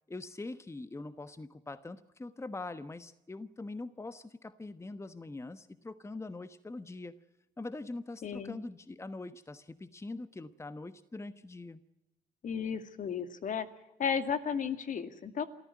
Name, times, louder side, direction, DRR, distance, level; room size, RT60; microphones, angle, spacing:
voice 1, 0.1-7.2 7.6-11.8, left 2 dB, 15° left, 13 dB, 1.2 m, -43 dB
voice 2, 8.2-8.6 12.4-13.7 14.0-15.4, left 7 dB, 55° left, 10 dB, 2.2 m, -34 dB
25.0 x 14.5 x 9.5 m, 0.93 s
supercardioid pair, 60°, 16 cm